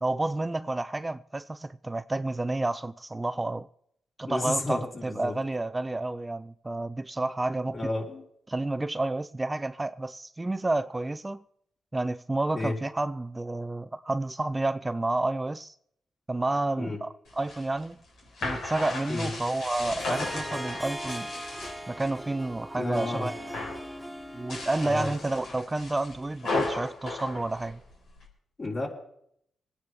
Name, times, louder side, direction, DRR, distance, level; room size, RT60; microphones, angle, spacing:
voice 1, 0.0-3.7 4.2-7.8 8.5-11.4 11.9-15.7 16.3-18.0 18.4-21.3 21.9-23.3 24.3-27.8, right 2 dB, 20° right, 0.4 m, -30 dB
voice 2, 4.3-5.4 7.7-8.2 12.6-12.7 16.8-17.0 19.1-19.3 22.8-23.3 24.8-25.1 28.6-28.9, left 2 dB, 45° left, 3.8 m, -31 dB
sound 1, 17.3-22.2 22.5-23.1 23.4-23.9 24.4-28.2, left 2 dB, 85° left, 3.9 m, -35 dB
Harp, 20.0-25.5, equal, ahead, 1.0 m, -39 dB
25.0 x 9.7 x 3.4 m
cardioid pair, 60°, 0 cm